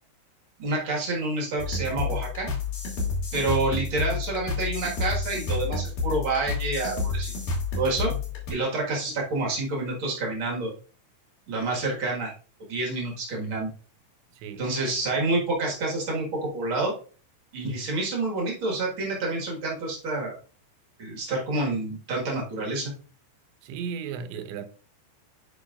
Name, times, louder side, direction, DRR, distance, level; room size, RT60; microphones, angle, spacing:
voice 1, 0.6-2.5 3.3-7.3 7.7-8.1 8.5-10.7 11.5-12.3 12.7-13.7 14.6-16.9 17.5-20.3 21.0-22.9, right 2 dB, 65° right, 1.2 m, -28 dB
sound 1, 1.6-8.5, left 4 dB, 55° left, 3.6 m, -30 dB
voice 2, 14.3-14.7 23.6-24.7, right 7 dB, 85° right, 3.0 m, -35 dB
10.5 x 5.2 x 2.4 m
omnidirectional pair, 5.2 m